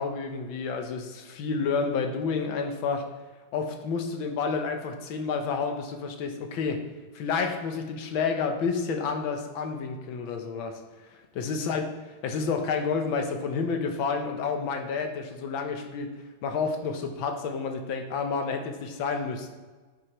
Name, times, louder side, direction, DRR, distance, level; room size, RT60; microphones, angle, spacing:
voice 1, 0.0-3.0 3.5-6.8 7.1-11.9 12.2-16.1 16.4-19.5, left 5 dB, 80° left, 5 dB, 1.7 m, -30 dB
9.4 x 6.2 x 3.0 m, 1.3 s
omnidirectional pair, 2.1 m